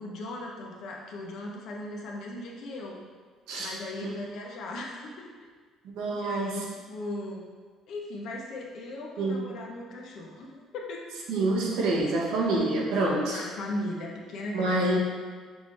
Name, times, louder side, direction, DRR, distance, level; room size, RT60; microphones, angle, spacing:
voice 1, 0.0-3.0 3.6-5.3 6.1-7.5 7.9-11.0 13.3-15.0, left 1 dB, 65° left, -1 dB, 0.8 m, -37 dB
voice 2, 5.8-6.7 9.2-9.5 11.3-13.5 14.5-15.0, right 2 dB, 90° right, -3 dB, 1.0 m, -27 dB
5.9 x 2.6 x 3.2 m, 1.5 s
cardioid pair, 135°, 0 cm